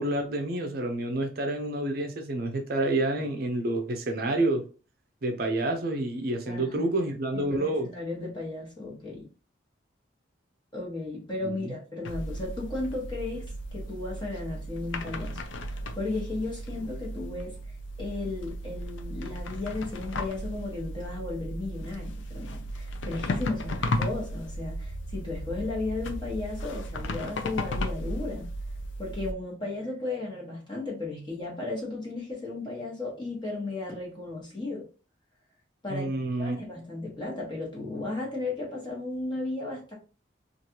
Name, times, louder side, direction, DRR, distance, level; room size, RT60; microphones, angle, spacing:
voice 1, 0.0-4.6 5.2-7.9 11.4-11.7 35.9-36.6, right 2 dB, 50° right, 4 dB, 0.5 m, -28 dB
voice 2, 6.4-6.9 7.3-9.2 10.7-15.4 15.7-17.6 18.0-28.5 29.0-34.8 35.8-36.1 36.4-39.9, left 2 dB, 25° left, -3 dB, 1.2 m, -35 dB
sound 1, 12.0-29.3, left 1 dB, 75° left, 0.4 m, -35 dB
3.1 x 2.5 x 2.8 m, 0.36 s
head